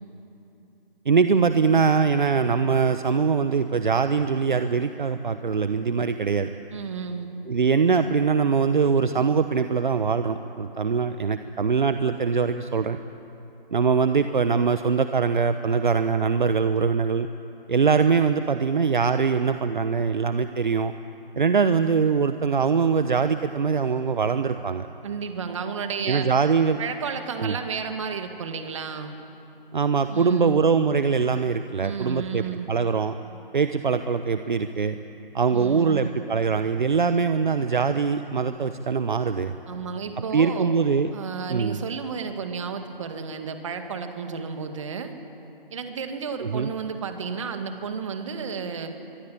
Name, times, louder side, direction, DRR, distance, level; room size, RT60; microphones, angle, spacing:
voice 1, 1.0-6.5 7.5-13.0 13.7-17.3 17.7-20.9 21.4-24.9 26.0-26.8 27.4-27.6 29.7-33.1 33.5-35.0 35.3-39.5 40.3-41.1 41.5-41.8 46.4-46.7, right 5 dB, 55° right, 10 dB, 1.0 m, -22 dB
voice 2, 6.7-7.3 25.0-26.3 26.8-29.2 30.1-30.6 31.8-32.7 35.5-36.1 39.7-40.8 41.1-45.1 45.7-48.9, right 6 dB, 35° right, 6 dB, 2.0 m, -32 dB
24.0 x 22.0 x 8.6 m, 3.0 s
figure-of-eight pair, 155°, 29 cm